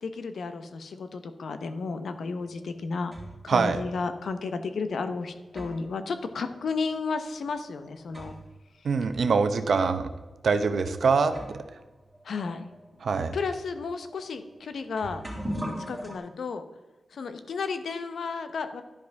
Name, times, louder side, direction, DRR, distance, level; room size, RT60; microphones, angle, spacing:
voice 1, 0.0-3.1 3.4-8.3 12.2-12.6 13.3-15.2 15.9-16.6 17.1-18.8, left 4 dB, 80° left, 9 dB, 0.7 m, -33 dB
sound 1, 2.4-3.5 4.4-4.5 5.2-8.6 8.9-9.0 9.8-10.0 10.8-10.9 11.2-16.2, equal, 10° right, 2.5 m, -41 dB
voice 2, 3.5-3.8 8.8-10.1 10.4-11.6 13.0-13.4, right 5 dB, 70° right, 9 dB, 0.7 m, -24 dB
11.0 x 5.1 x 3.5 m, 1.2 s
wide cardioid pair, 90°, 0 cm